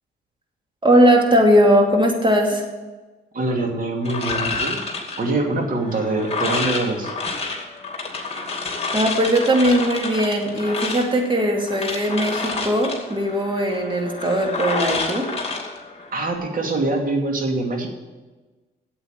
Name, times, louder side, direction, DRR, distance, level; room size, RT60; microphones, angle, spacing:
voice 1, 0.8-2.6 8.9-15.3, equal, 25° right, 1 dB, 2.7 m, -19 dB
voice 2, 3.3-4.8 5.2-7.1 16.1-17.9, right 2 dB, 45° right, 2 dB, 2.6 m, -24 dB
sound 1, 4.0-16.4, left 3 dB, 30° left, 2.4 m, -29 dB
8.6 x 8.0 x 8.9 m, 1.2 s
cardioid pair, 90°, 20 cm